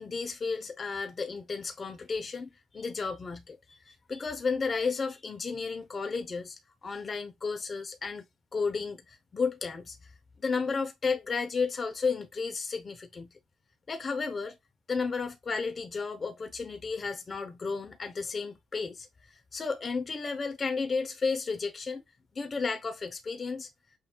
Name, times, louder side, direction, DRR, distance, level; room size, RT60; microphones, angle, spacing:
voice 1, 0.0-3.8 4.1-6.6 6.8-8.3 8.5-10.0 10.4-13.3 13.9-14.6 14.9-19.1 19.5-22.0 22.3-23.7, left 4 dB, 35° left, 0.8 m, -33 dB
6.3 x 2.7 x 2.3 m
cardioid pair, 90°, 0 cm